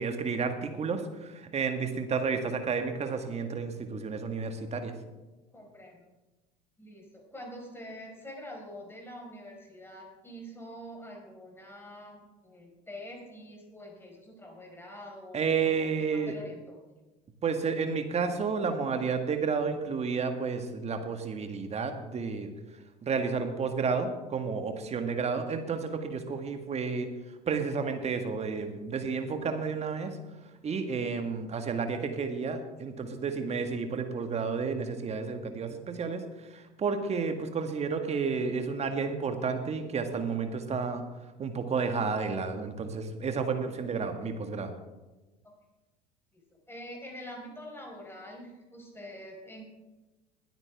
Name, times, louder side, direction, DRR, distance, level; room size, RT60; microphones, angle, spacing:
voice 1, 0.0-4.9 15.3-16.3 17.4-22.5 23.0-27.1 27.5-30.2 30.6-36.2 36.5-41.0 41.4-44.7, right 5 dB, 30° right, 7 dB, 1.7 m, -31 dB
voice 2, 5.5-6.1 6.8-16.8 46.7-49.6, equal, 10° left, 0 dB, 4.8 m, -45 dB
20.5 x 9.1 x 3.5 m, 1.1 s
figure-of-eight pair, 65°, 21 cm